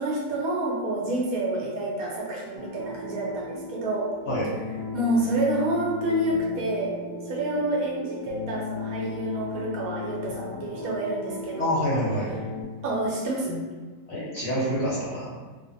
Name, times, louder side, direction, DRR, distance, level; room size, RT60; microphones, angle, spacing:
voice 1, 0.0-4.1 4.9-7.0 7.3-11.8 12.8-13.6, right 1 dB, 65° right, -3 dB, 1.0 m, -28 dB
sound 1, 2.6-12.6, left 3 dB, 90° right, 0.5 m, -36 dB
voice 2, 11.6-12.3 14.1-15.4, equal, 60° left, -7 dB, 0.7 m, -27 dB
2.5 x 2.5 x 2.5 m, 1.4 s
omnidirectional pair, 1.9 m